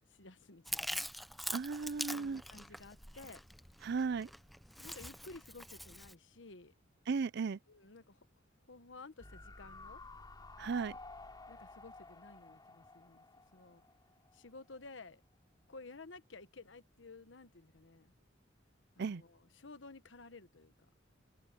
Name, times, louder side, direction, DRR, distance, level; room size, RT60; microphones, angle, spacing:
voice 1, 0.1-1.1 2.1-3.4 4.8-6.7 7.7-8.3 8.7-10.0 11.5-13.2 13.5-13.8 14.3-15.2 15.7-18.1 18.9-20.7, left 3 dB, 80° left, 1.2 m, -54 dB
Chewing mastication, 0.7-6.1, equal, ahead, 0.6 m, -44 dB
voice 2, 1.5-2.4 3.8-4.3 7.1-7.6 10.6-11.0 19.0-19.2, right 5 dB, 60° right, 0.5 m, -35 dB
sound 1, 9.2-14.4 14.7-14.8, left 3 dB, 25° left, 3.1 m, -53 dB
head